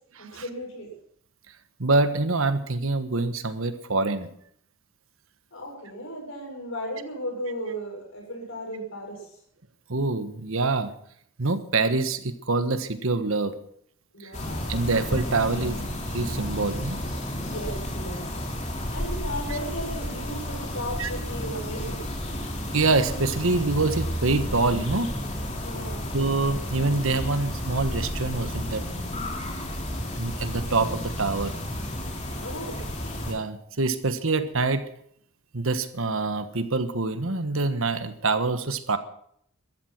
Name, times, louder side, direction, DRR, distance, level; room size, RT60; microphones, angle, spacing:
voice 1, 0.2-0.9 5.5-9.4 14.1-14.7 17.5-18.2 18.7-22.1 25.6-26.1 32.4-32.8, equal, 65° left, 1 dB, 7.2 m, -35 dB
voice 2, 1.8-4.3 9.9-10.9 11.4-13.5 14.2-14.3 14.7-15.8 16.1-17.0 19.5-19.6 21.0-21.1 22.7-25.1 26.1-28.8 30.1-31.5 33.2-34.9 35.5-39.0, right 3 dB, 65° right, 10 dB, 1.4 m, -25 dB
sound 1, 14.3-33.3, equal, 35° left, 3.4 m, -32 dB
14.5 x 13.5 x 6.1 m, 0.67 s
head